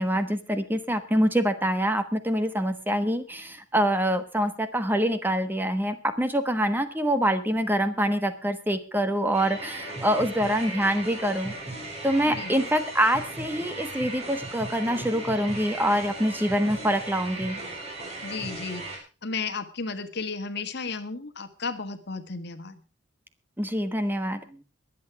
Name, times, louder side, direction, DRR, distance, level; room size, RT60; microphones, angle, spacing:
voice 1, 0.0-11.5 12.0-17.6 23.6-24.6, equal, 10° right, 9 dB, 1.2 m, -25 dB
sound 1, 9.3-19.0, right 2 dB, 35° right, 5.8 m, -37 dB
voice 2, 18.2-22.8, left 4 dB, 60° left, 9 dB, 1.6 m, -34 dB
22.5 x 8.6 x 4.8 m, 0.33 s
head